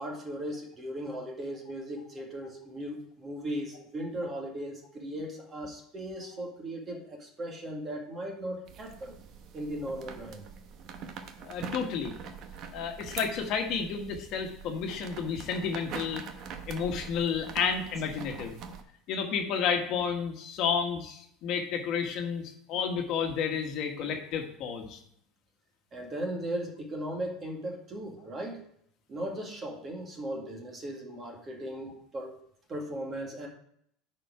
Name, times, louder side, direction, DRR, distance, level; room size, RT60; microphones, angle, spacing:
voice 1, 0.0-9.2 9.5-10.5 25.9-28.6 29.1-32.4 32.7-33.5, right 1 dB, 25° right, 1 dB, 1.9 m, -37 dB
sound 1, 8.7-18.8, right 6 dB, 45° right, 0.9 m, -44 dB
voice 2, 11.4-12.1 12.7-16.2 16.7-18.6 19.1-25.0, left 6 dB, 45° left, 3 dB, 1.5 m, -31 dB
11.0 x 4.4 x 4.8 m, 0.69 s
supercardioid pair, 150°, 0 cm